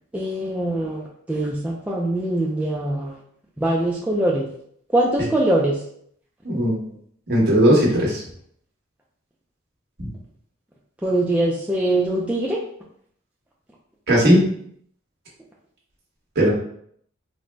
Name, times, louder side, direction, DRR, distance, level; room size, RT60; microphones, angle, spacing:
voice 1, 0.1-3.1 3.6-4.5 4.9-5.8 11.0-12.6, right 1 dB, 5° right, -4 dB, 0.3 m, -22 dB
voice 2, 6.4-6.8 7.3-8.2 10.0-10.1 14.1-14.4 16.3-16.5, equal, 55° right, -4 dB, 1.1 m, -17 dB
3.8 x 2.0 x 3.2 m, 0.67 s
head